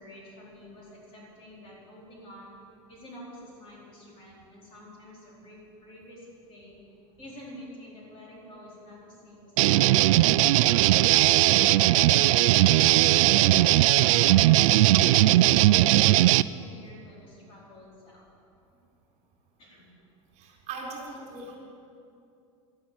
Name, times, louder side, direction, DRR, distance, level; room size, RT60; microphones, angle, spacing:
voice 1, 0.0-2.6 2.9-10.2 10.6-12.6 13.0-18.3 18.7-18.8 19.6-19.9, left 1 dB, 35° left, -4 dB, 4.4 m, -48 dB
sound 1, 9.6-16.4, right 16 dB, 80° right, 0.4 m, -19 dB
voice 2, 20.4-21.6, right 3 dB, 40° right, -1 dB, 4.0 m, -39 dB
12.0 x 11.5 x 8.8 m, 2.6 s
supercardioid pair, 150°, 17 cm